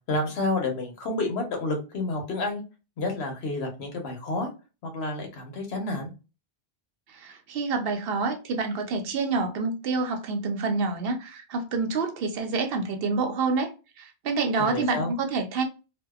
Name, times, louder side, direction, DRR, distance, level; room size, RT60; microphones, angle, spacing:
voice 1, 0.1-2.6 3.0-4.5 4.8-6.1 14.6-15.1, left 2 dB, 85° left, 1.1 m, -29 dB
voice 2, 7.2-13.7 14.0-15.6, right 4 dB, 70° right, 0.8 m, -27 dB
2.6 x 2.1 x 2.3 m
omnidirectional pair, 1.1 m